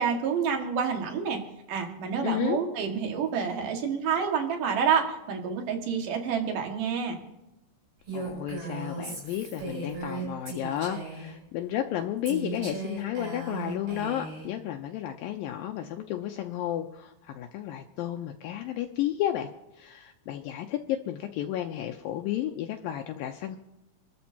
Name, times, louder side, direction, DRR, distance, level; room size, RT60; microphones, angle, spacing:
voice 1, 0.0-1.4 1.7-7.1, right 6 dB, 60° right, 3 dB, 3.3 m, -28 dB
voice 2, 2.2-2.6 8.1-19.5 19.8-23.6, left 12 dB, 80° left, 4 dB, 2.3 m, -32 dB
Female speech woman speaking, 8.1-11.4 12.3-14.5, right 3 dB, 80° right, 9.4 m, -36 dB
28.0 x 13.0 x 2.9 m, 0.93 s
omnidirectional pair, 4.5 m